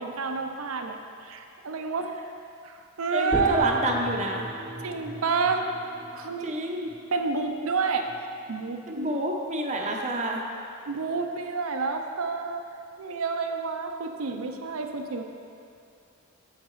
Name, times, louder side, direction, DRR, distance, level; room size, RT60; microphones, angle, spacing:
voice 1, 0.0-2.1 2.6-3.8 4.8-5.7 6.1-6.6 7.1-8.1 8.5-9.2 10.9-12.6 13.0-15.2, right 4 dB, 75° right, 5 dB, 0.6 m, -29 dB
voice 2, 3.1-4.4 6.4-6.9 8.9-10.4, right 1 dB, 35° right, 1 dB, 0.7 m, -28 dB
sound 1, 3.3-10.0, right 1 dB, 20° left, 1.4 m, -39 dB
8.8 x 7.3 x 3.1 m, 2.5 s
head